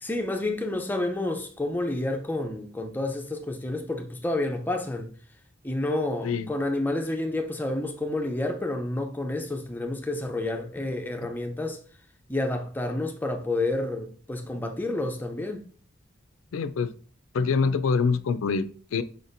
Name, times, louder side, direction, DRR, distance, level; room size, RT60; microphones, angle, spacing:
voice 1, 0.0-5.1 5.6-11.8 12.3-15.7, left 2 dB, 10° left, 0.5 m, -29 dB
voice 2, 16.5-16.9 17.3-19.0, left 5 dB, 85° left, 0.3 m, -25 dB
5.0 x 4.1 x 2.6 m
head